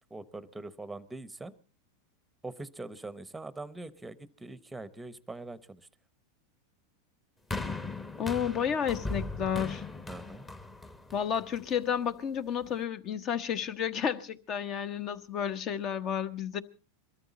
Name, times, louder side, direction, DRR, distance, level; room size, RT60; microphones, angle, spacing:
voice 1, 0.1-1.5 2.4-5.8 10.1-10.4, right 2 dB, 5° right, 0.9 m, -43 dB
sound 1, 7.5-11.9 12.6-12.7, left 2 dB, 15° left, 1.2 m, -38 dB
voice 2, 8.2-9.8 11.1-16.6, left 8 dB, 40° left, 1.0 m, -31 dB
22.5 x 13.5 x 4.1 m
supercardioid pair, 125°, 0 cm